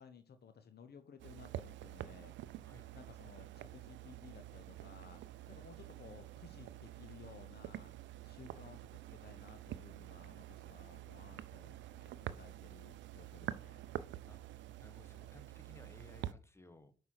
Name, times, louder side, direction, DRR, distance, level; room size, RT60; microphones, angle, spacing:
voice 1, 0.0-2.3 2.9-5.2 5.5-7.9 8.2-13.8, left 6 dB, 60° left, 0.8 m, -57 dB
sound 1, 1.2-16.3, right 13 dB, 75° right, 0.4 m, -48 dB
voice 2, 14.2-16.9, left 2 dB, 15° left, 1.4 m, -60 dB
5.5 x 4.6 x 6.3 m
supercardioid pair, 50°, 19 cm